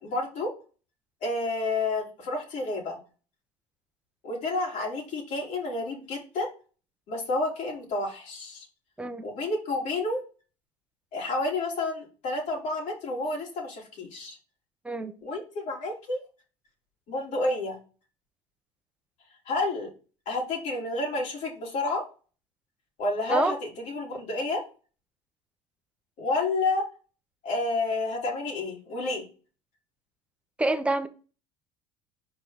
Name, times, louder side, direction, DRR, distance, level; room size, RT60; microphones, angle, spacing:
voice 1, 0.0-0.5 1.2-3.0 4.2-6.5 7.1-8.7 9.2-10.2 11.1-14.4 15.2-16.2 17.1-17.8 19.5-19.9 20.2-22.0 23.0-24.6 26.2-26.8 27.4-29.2, left 2 dB, 55° left, 3.4 m, -30 dB
voice 2, 30.6-31.1, right 2 dB, 10° right, 0.9 m, -26 dB
5.4 x 4.8 x 4.1 m
supercardioid pair, 120°, 15 cm